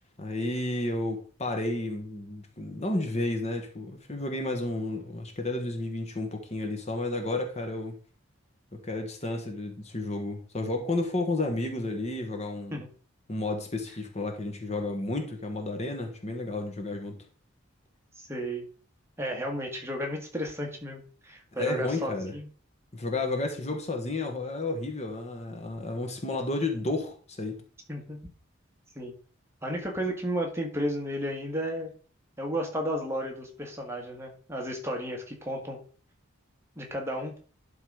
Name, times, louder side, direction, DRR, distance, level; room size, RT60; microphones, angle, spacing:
voice 1, 0.2-8.0 8.7-12.8 13.3-17.2 21.6-22.3 22.9-27.6, left 2 dB, 35° left, 1.3 m, -32 dB
voice 2, 18.2-18.6 19.2-22.5 27.9-28.2 28.9-29.1 29.6-31.9 32.4-35.8 36.7-37.4, equal, 15° right, 1.7 m, -33 dB
11.5 x 4.0 x 4.9 m
head